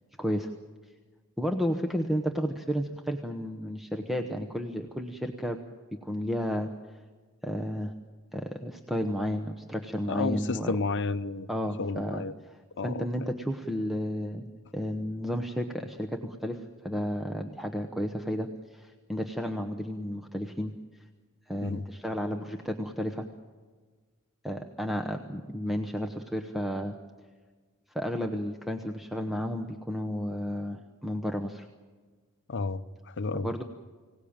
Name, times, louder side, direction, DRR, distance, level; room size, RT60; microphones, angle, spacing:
voice 1, 0.2-0.5 1.4-5.6 5.9-6.7 7.4-7.9 8.3-10.8 11.5-20.7 21.5-23.3 24.4-26.9 27.9-31.7 33.4-33.6, equal, ahead, 3 dB, 1.0 m, -32 dB
voice 2, 10.1-11.5 11.8-12.3 12.8-13.1 21.6-21.8 32.5-33.5, left 3 dB, 55° left, 12 dB, 0.8 m, -31 dB
25.0 x 18.0 x 8.8 m, 1.4 s
head